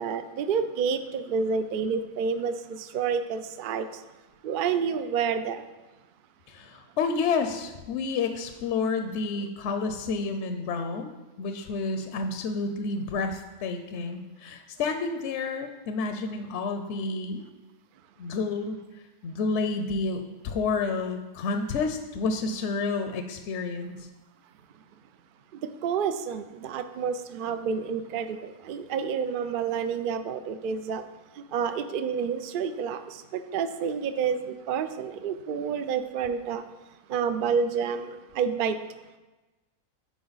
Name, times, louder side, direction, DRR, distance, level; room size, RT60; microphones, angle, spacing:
voice 1, 0.0-3.9 4.4-5.6 25.8-31.0 31.4-36.6 37.1-38.8, right 6 dB, 70° right, 10 dB, 0.5 m, -29 dB
voice 2, 6.5-17.4 18.2-18.8 19.2-24.0, left 4 dB, 65° left, 7 dB, 0.8 m, -30 dB
10.0 x 4.6 x 4.0 m, 1.2 s
omnidirectional pair, 1.4 m